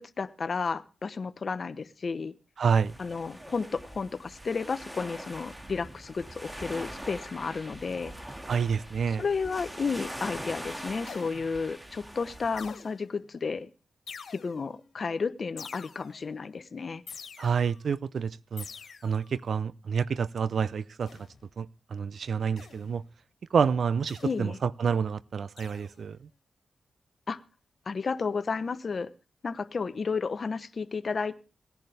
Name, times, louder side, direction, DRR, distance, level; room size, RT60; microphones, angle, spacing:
voice 1, 0.0-2.3 3.0-8.1 9.0-13.7 14.3-17.0 24.2-24.6 27.3-27.4 27.9-29.1 29.4-31.4, left 5 dB, 60° left, 0.9 m, -32 dB
voice 2, 2.6-2.9 8.5-9.2 17.4-18.6 19.0-21.1 21.6-23.0 23.5-26.2, right 6 dB, 75° right, 0.5 m, -28 dB
sound 1, 2.7-12.7, equal, 15° right, 2.0 m, -42 dB
sound 2, 11.1-11.7 12.6-13.2 14.1-14.8 15.6-16.3 17.1-17.8 18.6-19.3 21.1-21.5 22.6-23.0 24.1-24.5 25.6-26.1, left 6 dB, 80° left, 2.1 m, -46 dB
18.5 x 10.5 x 3.4 m
cardioid pair, 55°, 0 cm